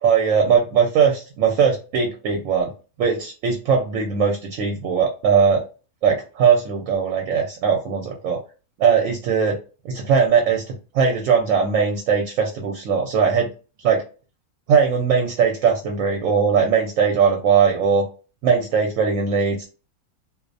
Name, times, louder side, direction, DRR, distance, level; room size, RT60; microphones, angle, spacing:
voice 1, 0.0-2.7 3.0-5.6 6.0-8.4 8.8-9.6 9.8-13.5 13.8-14.0 14.7-18.0 18.4-19.7, right 6 dB, 70° right, 2 dB, 0.9 m, -19 dB
2.5 x 2.0 x 2.4 m, 0.34 s
omnidirectional pair, 1.5 m